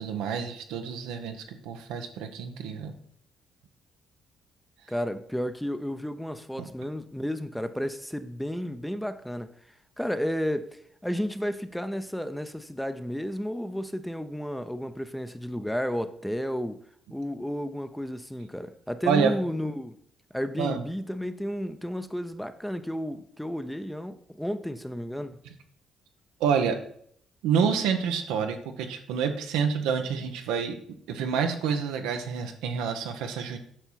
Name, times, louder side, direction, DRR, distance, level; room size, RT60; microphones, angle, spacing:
voice 1, 0.0-2.9 6.6-6.7 19.1-19.3 20.6-20.8 26.4-26.8 27.4-30.8 31.1-33.6, right 6 dB, 90° right, 1.0 m, -28 dB
voice 2, 4.9-9.5 10.0-16.8 17.1-19.9 20.3-25.4, equal, 5° left, 0.7 m, -32 dB
9.0 x 5.6 x 4.7 m
supercardioid pair, 75°, 0 cm